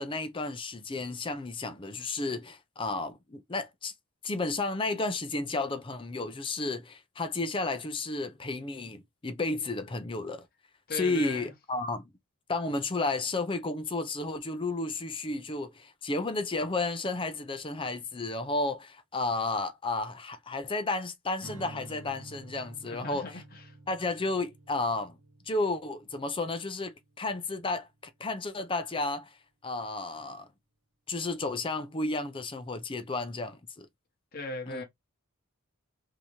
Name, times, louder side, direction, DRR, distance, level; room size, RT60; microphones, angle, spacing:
voice 1, 0.0-3.9 4.2-10.5 10.9-12.1 12.5-23.4 23.9-25.2 25.5-29.4 29.6-30.5 31.1-33.9 34.7-34.8, left 2 dB, 25° left, 0.5 m, -32 dB
voice 2, 10.9-11.5 22.9-23.7 34.3-34.8, left 3 dB, 45° left, 0.9 m, -38 dB
Strum, 21.4-27.8, right 2 dB, 75° right, 1.1 m, -50 dB
3.5 x 2.8 x 2.9 m
head